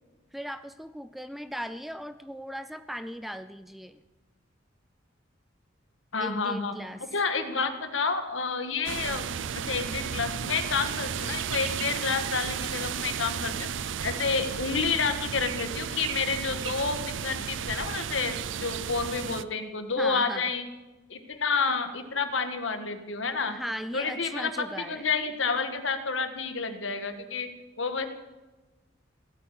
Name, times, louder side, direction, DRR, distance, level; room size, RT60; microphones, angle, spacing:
voice 1, 0.3-4.0 6.2-7.1 20.0-20.5 23.5-25.1, equal, ahead, 12 dB, 0.5 m, -38 dB
voice 2, 6.1-6.7 7.1-9.3 9.6-20.6 21.1-23.6 23.9-27.5 27.8-28.1, left 4 dB, 75° left, 8 dB, 1.6 m, -29 dB
sound 1, 8.8-19.4, right 7 dB, 70° right, 0.5 m, -33 dB
16.0 x 8.4 x 10.0 m, 1.1 s
head